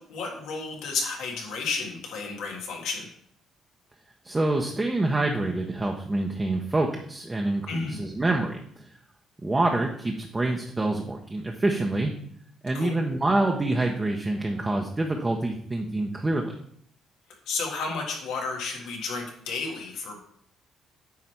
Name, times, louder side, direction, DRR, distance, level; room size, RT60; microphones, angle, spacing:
voice 1, 0.0-3.1 7.7-8.0 12.7-13.0 17.5-20.2, left 4 dB, 90° left, 0 dB, 1.7 m, -32 dB
voice 2, 4.2-8.9 9.4-12.1 12.6-16.5, right 2 dB, 20° right, 1 dB, 0.7 m, -26 dB
9.4 x 3.2 x 4.4 m, 0.66 s
cardioid pair, 105°, 0 cm